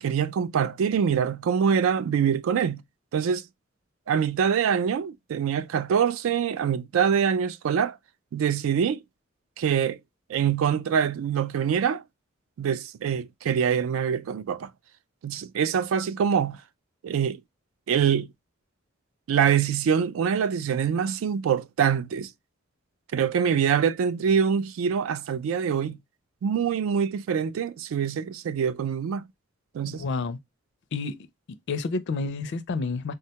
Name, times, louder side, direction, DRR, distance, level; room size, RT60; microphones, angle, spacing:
voice 1, 0.0-2.8 3.1-3.4 4.1-8.0 8.3-9.0 9.6-10.0 10.3-12.0 12.6-14.7 15.2-16.6 17.0-17.4 17.9-18.3 19.3-22.3 23.1-26.0 26.4-29.2 29.7-30.0, right 7 dB, 70° right, 0.3 m, -24 dB
voice 2, 29.9-30.4 30.9-31.2 31.7-33.1, left 4 dB, 60° left, 0.4 m, -29 dB
3.6 x 2.1 x 2.8 m
head